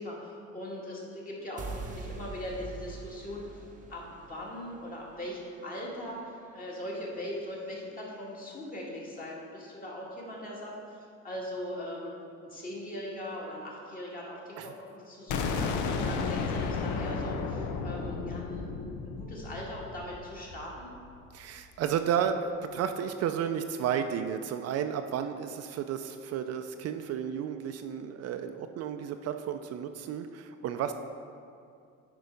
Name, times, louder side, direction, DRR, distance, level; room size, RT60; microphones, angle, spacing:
voice 1, 0.0-3.6 3.9-6.2 6.5-12.1 12.4-20.9, left 1 dB, 30° left, -4 dB, 2.0 m, -40 dB
sound 1, 1.6-7.7, right 3 dB, 25° right, 0.7 m, -45 dB
sound 2, 15.3-21.1, left 4 dB, 85° left, 0.7 m, -33 dB
voice 2, 21.3-30.9, right 8 dB, 55° right, 7 dB, 0.5 m, -32 dB
9.5 x 4.6 x 5.2 m, 2.4 s
cardioid pair, 120°, 29 cm